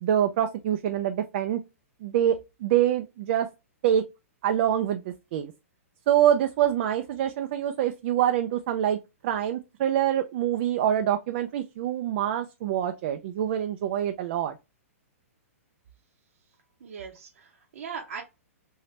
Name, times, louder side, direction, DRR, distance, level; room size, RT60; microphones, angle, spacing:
voice 1, 0.0-1.6 2.0-3.5 3.8-4.0 4.4-5.5 6.1-9.0 9.2-14.6, right 10 dB, 50° right, 0.4 m, -25 dB
voice 2, 16.8-18.2, right 6 dB, 70° right, 0.8 m, -39 dB
2.9 x 2.7 x 3.1 m
hypercardioid pair, 140°, 8 cm